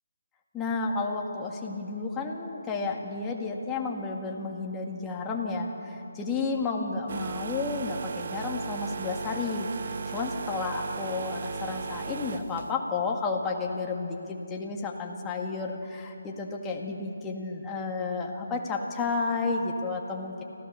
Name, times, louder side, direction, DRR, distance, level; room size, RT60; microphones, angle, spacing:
voice 1, 0.5-20.4, left 4 dB, 15° left, 0 dB, 1.9 m, -32 dB
sound 1, 7.1-12.7, right 5 dB, 55° right, 0.8 m, -36 dB
26.5 x 15.5 x 6.8 m, 2.9 s
figure-of-eight pair, 150°, 0 cm